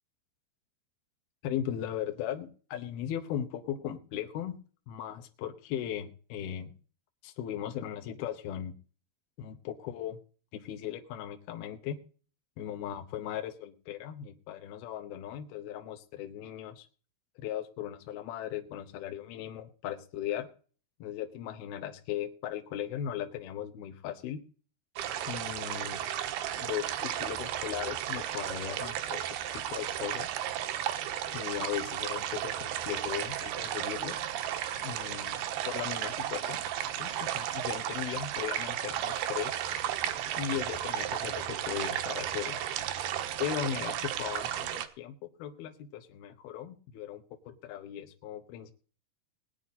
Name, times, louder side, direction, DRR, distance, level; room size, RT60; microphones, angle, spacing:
voice 1, 1.4-4.6 4.9-6.7 7.2-8.7 9.4-10.2 10.5-12.0 12.6-16.9 17.4-20.5 21.0-24.4 25.3-26.1 26.6-29.2 29.5-30.3 31.3-34.2 34.8-35.4 35.6-36.6 37.0-39.6 40.4-42.6 43.4-48.7, left 10 dB, 70° left, 4 dB, 2.6 m, -37 dB
sound 1, 25.0-44.9, right 11 dB, 70° right, 2.7 m, -34 dB
20.5 x 9.8 x 4.2 m, 0.40 s
omnidirectional pair, 5.5 m